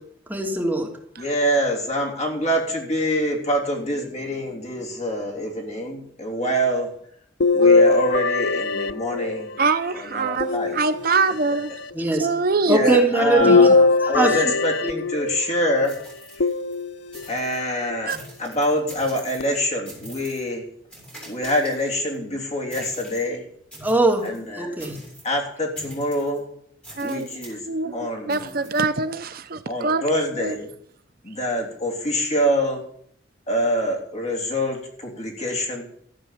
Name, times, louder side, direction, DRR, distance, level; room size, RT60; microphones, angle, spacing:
voice 1, 0.3-0.9 11.9-12.3 12.7-13.7 14.1-14.3 14.8-14.9 23.8-24.2 24.6-25.0, right 2 dB, 10° right, -1 dB, 2.9 m, -20 dB
voice 2, 1.2-6.9 7.5-9.5 9.9-10.8 11.5-11.6 12.7-16.0 16.4-16.5 17.3-20.7 21.3-23.5 24.2-24.8 25.2-26.5 27.0-28.7 29.7-30.7 31.2-32.8 33.5-35.8, equal, 35° left, 0 dB, 3.3 m, -25 dB
sound 1, 7.4-9.7 10.4-11.4 13.4-15.5 16.4-17.3 17.9-18.0 19.4-19.5, left 4 dB, 60° left, 0.5 m, -20 dB
voice 3, 9.6-11.7 12.2-13.0 13.4-13.6 18.1-18.2 27.0-27.3 27.7-28.0 28.3-30.0 30.4-30.5, right 4 dB, 50° right, 11 dB, 0.6 m, -23 dB
sound 2, 15.8-16.8 17.1-17.7 18.1-19.6 19.9-20.5 20.9-22.2 22.7-23.3 23.7-24.4 24.8-25.3 25.8-26.4 26.8-27.6 28.3-28.8, equal, 5° left, 7.8 m, -43 dB
14.5 x 8.9 x 7.3 m, 0.66 s
head